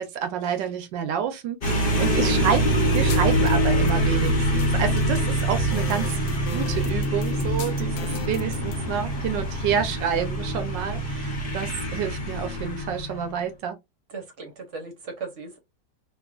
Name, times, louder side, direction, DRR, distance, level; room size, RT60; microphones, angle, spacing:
voice 1, 0.0-6.2 6.5-13.8, right 8 dB, 70° right, 1.4 m, -29 dB
sound 1, 1.6-13.3, right 1 dB, 40° left, 0.9 m, -24 dB
sound 2, 2.9-8.8, left 2 dB, 75° left, 1.2 m, -33 dB
voice 2, 14.1-15.6, right 4 dB, 45° right, 1.1 m, -37 dB
3.7 x 2.5 x 2.4 m
omnidirectional pair, 2.1 m